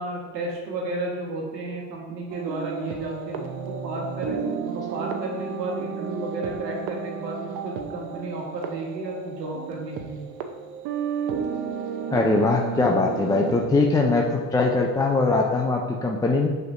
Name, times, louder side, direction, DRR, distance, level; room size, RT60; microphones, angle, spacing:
voice 1, 0.0-4.4 4.9-10.3, right 2 dB, 90° right, -1 dB, 1.6 m, -32 dB
sound 1, 2.3-13.7, right 6 dB, 50° right, 0.9 m, -32 dB
voice 2, 12.1-16.5, left 3 dB, 10° left, 0 dB, 0.4 m, -21 dB
6.5 x 6.3 x 2.6 m, 1.4 s
hypercardioid pair, 80°, 48 cm